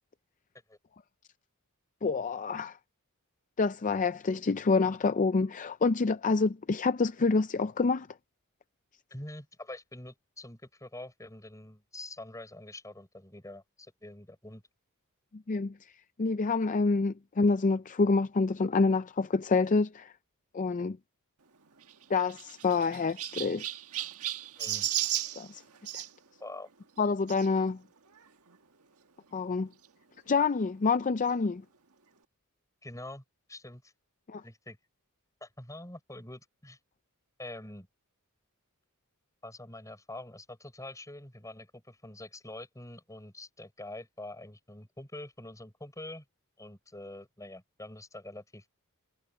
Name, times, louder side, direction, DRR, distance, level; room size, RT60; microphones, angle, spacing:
voice 1, 2.0-2.8 3.6-8.1 15.3-15.7 16.2-20.1 20.5-21.0 22.1-23.6 25.4-25.6 27.0-27.8 29.3-29.7 30.3-31.6 34.3-34.4, left 4 dB, 35° left, 0.5 m, -27 dB
voice 2, 9.1-14.6 24.6-24.9 26.4-26.7 32.8-33.2 33.5-33.9 34.4-34.8 35.4-36.8 37.4-37.9 39.4-46.2 46.6-48.6, left 1 dB, 15° left, 6.6 m, -45 dB
Chirp tweet, 21.8-26.1 27.3-27.5 28.2-28.3 28.5-28.6 29.8-29.9, right 13 dB, 80° right, 1.6 m, -35 dB
head